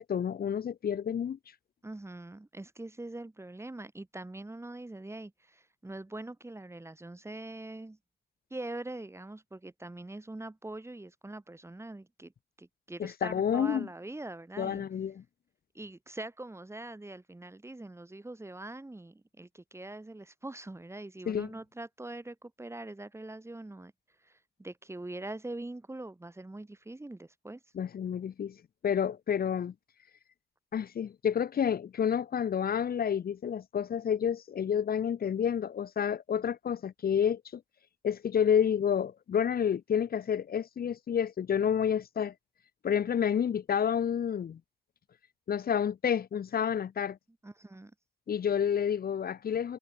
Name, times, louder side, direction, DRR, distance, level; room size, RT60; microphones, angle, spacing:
voice 1, 0.0-1.4 13.0-13.9 14.6-15.2 21.3-21.5 27.7-28.5 28.8-29.7 30.7-37.6 38.0-42.3 42.8-44.6 45.5-47.2 48.3-49.8, left 8 dB, 55° left, 1.3 m, -29 dB
voice 2, 1.8-8.0 8.5-12.3 12.6-14.8 15.7-23.9 24.2-27.6 47.4-47.9, right 2 dB, 15° right, 2.9 m, -43 dB
cardioid pair, 80°, 18 cm